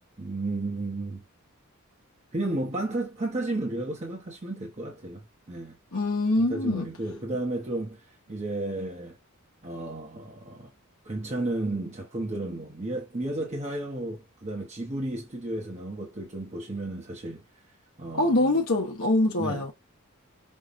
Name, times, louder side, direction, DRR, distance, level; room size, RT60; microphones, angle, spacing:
voice 1, 0.2-1.2 2.3-5.8 6.4-9.2 9.6-10.7 11.0-17.4 18.0-18.6 19.4-19.6, right 2 dB, 30° right, 0.9 m, -33 dB
voice 2, 5.9-6.8 18.2-19.7, left 2 dB, 60° left, 0.9 m, -24 dB
5.4 x 2.3 x 2.5 m
head